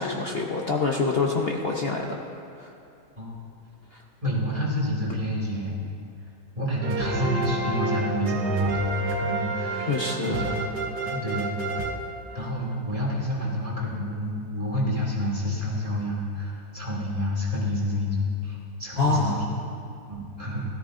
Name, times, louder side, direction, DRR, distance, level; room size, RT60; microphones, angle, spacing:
voice 1, 0.0-2.2 2.6-2.7 3.9-4.0 9.9-10.5 19.0-19.5, left 4 dB, 50° left, 0 dB, 0.7 m, -26 dB
voice 2, 4.2-5.7 6.6-9.9 10.2-10.7 11.1-11.6 12.3-19.4 20.1-20.6, equal, 20° right, -5 dB, 2.6 m, -28 dB
sound 1, 6.8-12.7, right 3 dB, 70° right, 1.4 m, -30 dB
17.0 x 13.5 x 2.6 m, 2.5 s
omnidirectional pair, 1.9 m